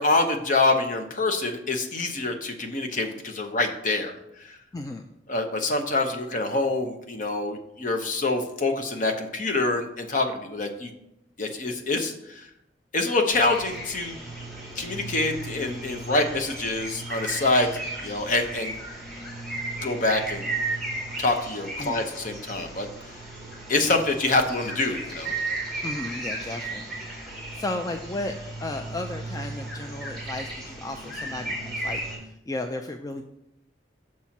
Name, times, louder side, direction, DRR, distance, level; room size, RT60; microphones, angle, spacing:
voice 1, 0.0-4.6 5.3-10.9 11.4-12.5 12.9-14.2 14.8-17.7 18.0-18.8 19.8-20.4 21.2-23.1 23.7-25.4, left 2 dB, 45° left, 5 dB, 0.8 m, -26 dB
voice 2, 4.7-5.1 21.8-22.1 25.8-27.1 27.5-28.3 28.6-33.2, left 2 dB, 20° left, 5 dB, 0.3 m, -34 dB
sound 1, 13.3-32.2, right 2 dB, 5° left, 2.5 m, -35 dB
6.2 x 4.3 x 5.9 m, 0.83 s
head